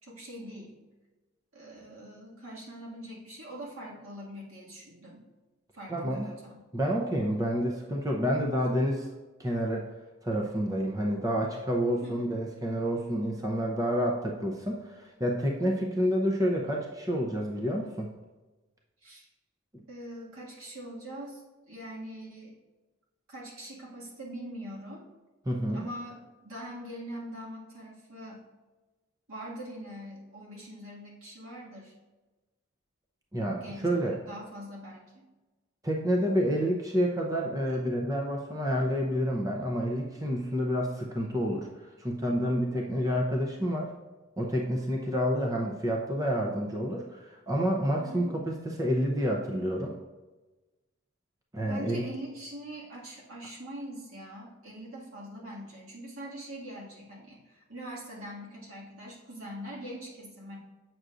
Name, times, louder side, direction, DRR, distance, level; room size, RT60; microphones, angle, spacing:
voice 1, 0.0-0.8 1.5-5.2 5.7-6.6 12.0-12.3 19.0-19.3 19.9-22.5 23.3-25.1 25.7-28.4 29.3-31.9 33.5-35.2 48.0-48.3 51.7-60.6, equal, 85° right, -4 dB, 2.1 m, -43 dB
voice 2, 5.9-6.4 6.7-9.1 9.4-9.9 10.2-18.1 25.5-25.8 33.3-34.2 35.8-41.7 42.0-43.9 44.4-49.9 51.5-52.0, equal, 15° right, -1 dB, 0.6 m, -29 dB
7.8 x 6.1 x 2.5 m, 1.2 s
head